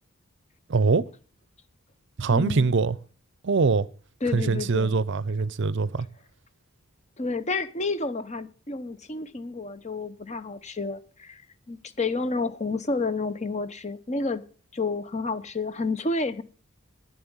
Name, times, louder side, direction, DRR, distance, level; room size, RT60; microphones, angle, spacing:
voice 1, 0.7-1.0 2.2-2.9 3.4-3.9 4.3-6.1, right 4 dB, 55° right, 0.5 m, -23 dB
voice 2, 2.3-2.7 4.2-5.0 7.2-11.4 11.7-14.4 14.7-16.4, left 3 dB, 30° left, 0.9 m, -30 dB
11.0 x 9.4 x 7.1 m
head